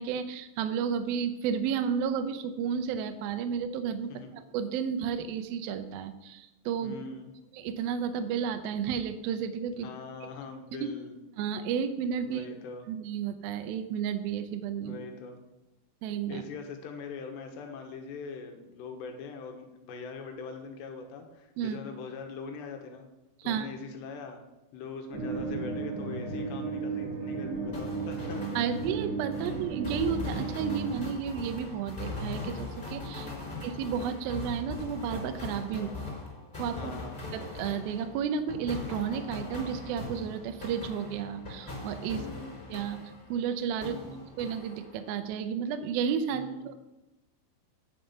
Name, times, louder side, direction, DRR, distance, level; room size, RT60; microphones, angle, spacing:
voice 1, 0.0-6.9 7.5-9.9 10.2-10.3 10.8-10.9 11.4-12.4 12.9-15.0 16.0-16.4 21.6-21.8 23.4-23.7 28.6-33.3 33.6-35.9 36.6-36.9 37.3-42.2 42.7-43.0 43.3-44.0 44.4-46.7, right 7 dB, 80° right, 9 dB, 2.2 m, -32 dB
voice 2, 6.8-7.3 9.8-11.2 12.2-12.9 14.8-15.4 16.3-23.1 23.4-24.4 24.7-28.6 29.4-29.5 33.2-33.6 35.7-36.0 36.7-37.3 42.1-42.6 43.8-44.2 46.3-46.7, left 5 dB, 80° left, 4 dB, 3.3 m, -42 dB
sound 1, 25.1-31.0, right 4 dB, 50° right, 1.7 m, -34 dB
sound 2, 27.7-43.5 43.8-45.2, left 3 dB, 10° left, 3.6 m, -40 dB
9.9 x 7.8 x 5.5 m, 1.0 s
omnidirectional pair, 5.1 m